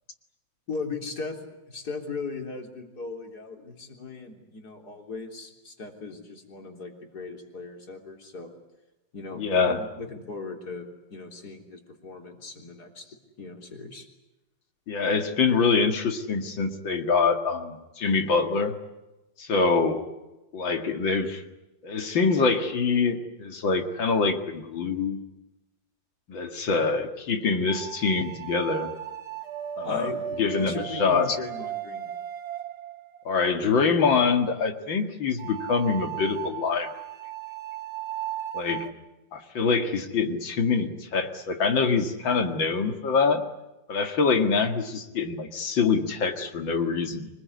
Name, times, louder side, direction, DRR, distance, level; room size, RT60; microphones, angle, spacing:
voice 1, 0.7-1.4 1.7-8.5 9.1-13.1 13.4-14.1 29.8-30.2 30.6-32.1, left 4 dB, 55° left, 3 dB, 4.1 m, -38 dB
voice 2, 9.4-9.8 14.9-18.8 19.4-20.1 20.5-21.4 21.8-25.2 26.3-28.9 29.8-30.1 30.4-31.4 33.2-36.9 38.5-38.9 39.3-43.4 43.9-47.3, left 4 dB, 80° left, 6 dB, 2.8 m, -25 dB
sound 1, 27.7-33.5 35.4-38.9, right 10 dB, 55° right, 2.0 m, -36 dB
25.5 x 20.5 x 9.6 m, 1.0 s
omnidirectional pair, 2.1 m